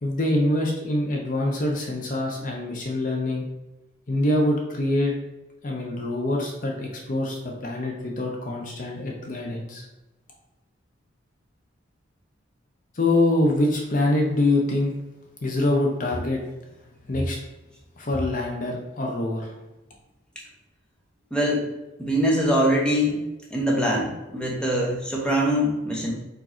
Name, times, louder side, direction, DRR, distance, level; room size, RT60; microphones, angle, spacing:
voice 1, 0.0-3.5 4.1-5.1 5.6-9.8 12.9-14.9 15.4-16.4 17.1-17.4 18.0-19.5, left 1 dB, 45° left, 0 dB, 0.7 m, -25 dB
voice 2, 21.3-21.7 22.0-23.2 23.5-26.2, equal, 5° left, -3 dB, 0.8 m, -23 dB
4.7 x 2.6 x 4.3 m, 1.0 s
head